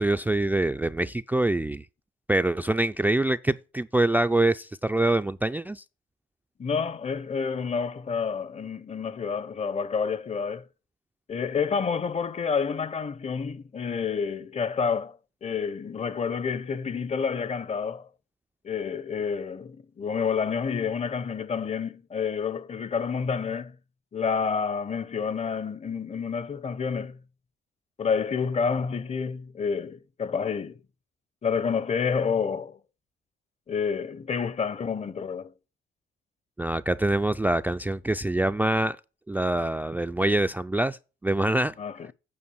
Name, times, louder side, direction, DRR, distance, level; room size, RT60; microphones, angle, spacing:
voice 1, 0.0-1.9 2.3-5.8 36.6-39.0 39.3-41.7, right 2 dB, 10° right, 0.3 m, -25 dB
voice 2, 6.6-10.7 11.3-18.1 18.6-23.8 24.1-27.2 28.0-30.8 31.4-32.8 33.7-35.5 41.8-42.0, left 6 dB, 35° left, 0.7 m, -29 dB
8.7 x 4.5 x 7.1 m
cardioid pair, 90°, 20 cm